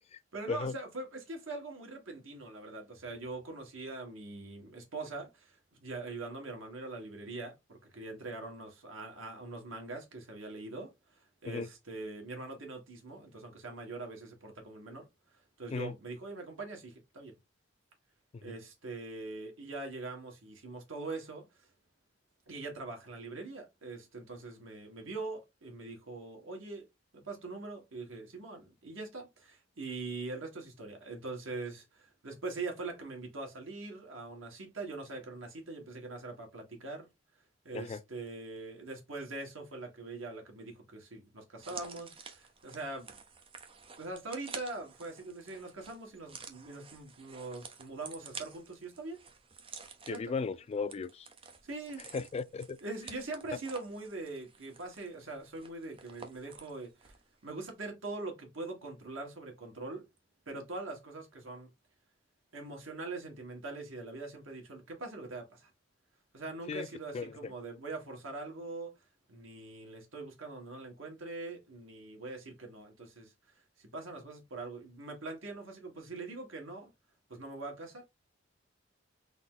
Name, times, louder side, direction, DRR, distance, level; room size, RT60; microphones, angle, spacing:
voice 1, 0.3-15.0 15.6-17.4 18.4-21.4 22.5-26.8 27.1-37.1 37.7-43.1 44.0-49.2 50.1-50.3 51.6-52.0 52.8-57.1 57.4-60.0 60.5-61.7 62.5-65.7 66.3-68.9 69.3-73.3 73.9-76.9 77.3-78.0, right 3 dB, 80° right, 1.7 m, -42 dB
sound 1, 41.6-57.3 57.6-57.7, right 5 dB, 30° right, 0.7 m, -50 dB
voice 2, 50.1-51.3 52.1-52.8 66.7-66.9 67.1-67.5, left 4 dB, 30° left, 0.3 m, -36 dB
3.9 x 2.8 x 3.8 m
head